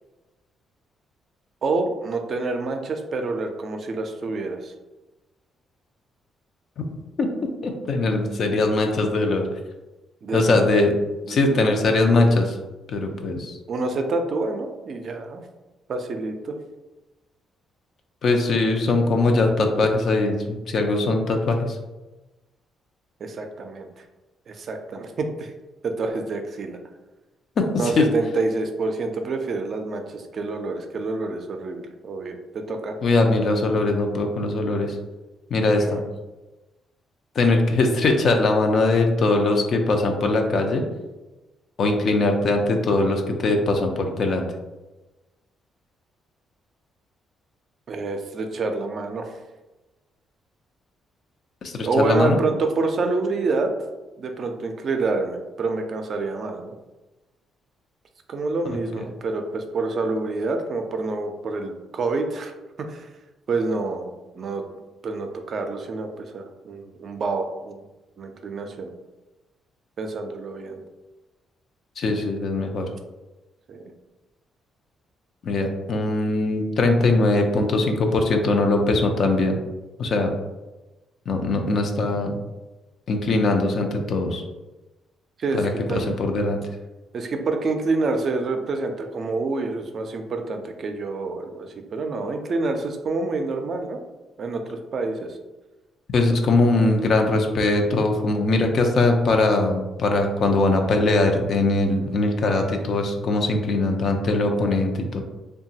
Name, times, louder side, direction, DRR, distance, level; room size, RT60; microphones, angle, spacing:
voice 1, 1.6-4.7 10.2-10.7 11.2-11.8 13.7-15.4 15.9-16.5 23.2-24.0 24.5-25.5 25.8-26.8 27.8-33.0 35.8-36.0 47.9-49.3 51.8-53.7 54.2-56.7 58.3-62.5 62.9-63.1 63.5-64.6 65.0-67.8 68.2-68.9 70.0-70.8 73.7-73.9 85.4-86.2 87.1-94.0 94.4-95.4, right 3 dB, 55° right, 5 dB, 0.4 m, -27 dB
voice 2, 7.6-9.4 10.3-10.9 11.3-12.6 12.9-13.6 18.2-21.8 27.6-28.0 33.0-35.0 35.5-36.0 37.4-40.8 41.8-44.5 51.6-52.4 72.0-72.9 75.4-79.6 80.0-80.3 81.3-82.4 83.1-84.4 85.6-86.6 96.1-105.2, left 2 dB, 60° left, 4 dB, 0.4 m, -21 dB
2.9 x 2.2 x 2.7 m, 1.1 s
cardioid pair, 90°, 0 cm